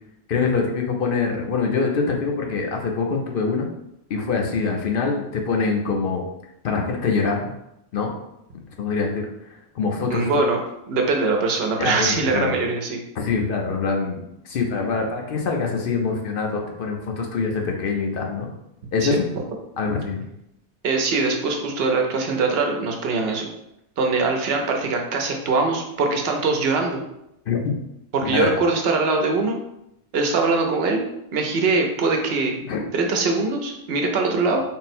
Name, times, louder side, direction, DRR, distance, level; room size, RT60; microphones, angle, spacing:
voice 1, 0.3-3.7 4.1-6.2 6.6-7.5 7.9-8.1 8.8-9.3 9.7-10.3 11.8-12.5 13.2-18.5 18.9-19.3 19.8-20.2 27.5-27.6 28.3-28.5 32.6-32.8, left 4 dB, 65° left, 1 dB, 0.8 m, -24 dB
voice 2, 10.1-10.6 10.9-13.0 19.0-19.1 20.8-23.5 24.0-27.0 28.1-29.6 30.1-31.0 31.3-32.5 32.9-34.6, right 3 dB, 75° right, 2 dB, 0.8 m, -22 dB
3.6 x 2.0 x 4.2 m, 0.83 s
omnidirectional pair, 1.1 m